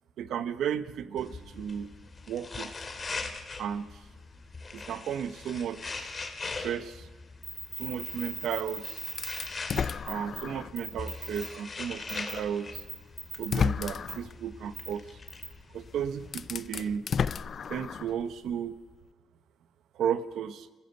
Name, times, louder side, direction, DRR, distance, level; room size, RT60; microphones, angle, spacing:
voice 1, 0.2-1.9 2.3-2.7 3.6-3.9 4.7-7.1 7.8-9.1 10.0-12.8 13.4-15.0 15.7-17.1 17.7-18.7 19.9-20.7, right 8 dB, 75° right, 12 dB, 1.1 m, -34 dB
sound 1, 1.2-17.0, left 4 dB, 35° left, 2.5 m, -42 dB
sound 2, 7.4-9.4 9.7-9.8 10.1-10.4 10.8-11.5 12.1-12.3 12.7-13.5 14.1-14.2 14.7-14.9 15.3-15.4, right 3 dB, 30° right, 4.8 m, -38 dB
sound 3, 9.2-10.8 11.3-11.4 12.7-12.8 13.3-14.3 15.7-15.8 16.2-18.2, left 7 dB, 50° left, 0.6 m, -32 dB
26.0 x 15.0 x 6.9 m, 1.3 s
cardioid pair, 90°, 0 cm